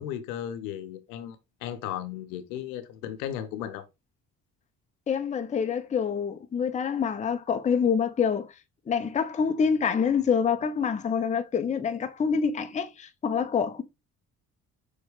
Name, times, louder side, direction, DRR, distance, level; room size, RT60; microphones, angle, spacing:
voice 1, 0.0-3.8, left 10 dB, 75° left, 0.6 m, -35 dB
voice 2, 5.1-8.5 8.9-13.8, left 6 dB, 15° left, 0.5 m, -26 dB
6.2 x 2.2 x 3.2 m
figure-of-eight pair, 45°, 44 cm